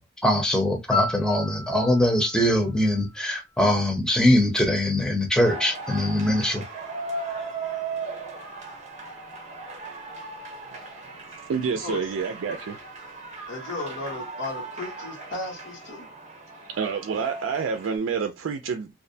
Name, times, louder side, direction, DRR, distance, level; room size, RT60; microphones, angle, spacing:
voice 1, 0.2-6.6, left 1 dB, 5° left, 0.6 m, -22 dB
Piano, 0.9-3.8 12.0-12.2, left 3 dB, 40° left, 0.8 m, -33 dB
sound 1, 5.4-18.0, right 3 dB, 35° right, 0.6 m, -37 dB
voice 2, 11.5-12.8 16.7-19.0, right 6 dB, 90° right, 0.4 m, -28 dB
voice 3, 13.5-16.1, left 2 dB, 75° left, 1.2 m, -35 dB
2.5 x 2.1 x 2.6 m
head